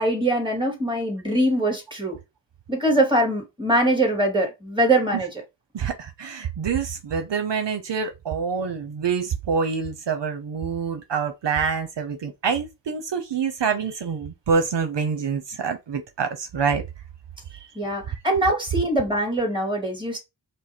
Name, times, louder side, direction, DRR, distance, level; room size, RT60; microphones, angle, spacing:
voice 1, 0.0-2.2 2.7-5.3 17.8-20.2, right 1 dB, 10° right, 2.1 m, -22 dB
voice 2, 5.7-16.8 17.5-17.7, right 6 dB, 70° right, 0.7 m, -26 dB
5.2 x 2.0 x 4.2 m
wide cardioid pair, 85°, 44 cm